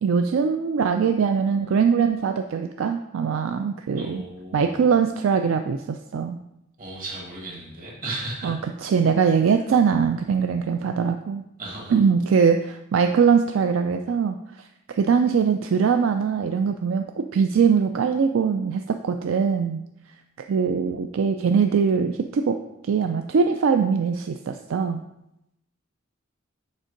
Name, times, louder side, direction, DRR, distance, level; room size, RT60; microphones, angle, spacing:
voice 1, 0.0-4.2 4.5-6.4 8.4-11.4 11.9-19.8 20.5-22.6 22.8-25.0, right 6 dB, 70° right, 6 dB, 0.4 m, -22 dB
voice 2, 4.0-4.8 6.8-8.6 11.6-12.0, right 2 dB, 45° right, -2 dB, 1.9 m, -35 dB
6.4 x 4.4 x 5.1 m, 0.86 s
head